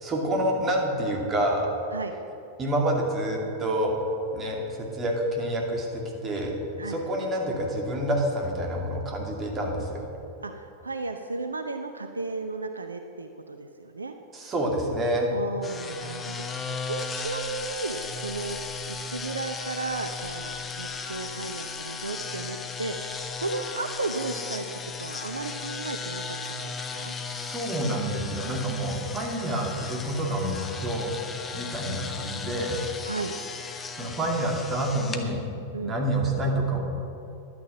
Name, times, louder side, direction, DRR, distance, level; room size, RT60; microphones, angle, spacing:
voice 1, 0.0-1.7 2.6-3.9 4.3-6.5 6.8-10.0 14.3-15.3 27.3-31.1 31.5-32.8 34.0-35.4 35.8-36.8, right 1 dB, 25° right, 0 dB, 2.6 m, -28 dB
voice 2, 10.8-14.1 15.3-24.6 25.0-26.2 26.5-27.1 33.0-33.3 35.7-35.9, right 3 dB, 75° right, 7 dB, 0.6 m, -34 dB
sound 1, 15.6-35.2, left 4 dB, 20° left, 1.1 m, -36 dB
11.5 x 9.6 x 7.2 m, 2.8 s
figure-of-eight pair, 90°, 0 cm